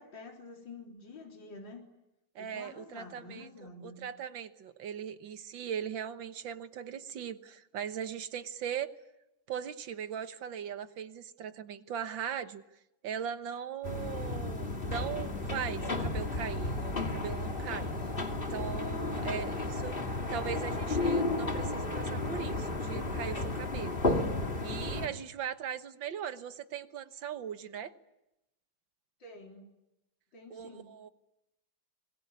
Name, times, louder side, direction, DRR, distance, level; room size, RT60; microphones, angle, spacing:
voice 1, 0.0-1.8 2.4-4.0 19.2-19.5 24.0-24.5 29.2-29.7 30.3-30.9, left 3 dB, 80° left, 1 dB, 4.5 m, -48 dB
voice 2, 2.4-3.5 3.8-8.9 9.5-12.6 13.0-18.1 18.5-20.0 20.3-24.0 24.6-27.9 30.5-31.1, right 8 dB, 85° right, 10 dB, 2.0 m, -39 dB
sound 1, 13.8-25.1, left 2 dB, 30° left, 2.5 m, -33 dB
25.5 x 22.0 x 9.6 m, 0.90 s
omnidirectional pair, 2.0 m